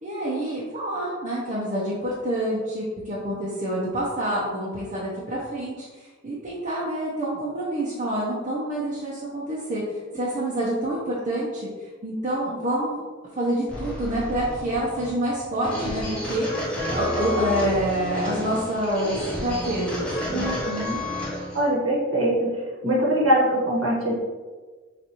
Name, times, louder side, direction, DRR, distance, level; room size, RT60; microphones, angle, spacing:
voice 1, 0.0-9.8 10.1-13.0 13.4-20.6, right 1 dB, 35° right, -7 dB, 0.8 m, -27 dB
sound 1, 13.7-21.6, left 1 dB, 5° left, 1.1 m, -31 dB
voice 2, 20.3-21.0 21.5-22.5 22.8-24.1, right 1 dB, 85° right, -4 dB, 1.5 m, -22 dB
6.7 x 2.6 x 3.0 m, 1.4 s
head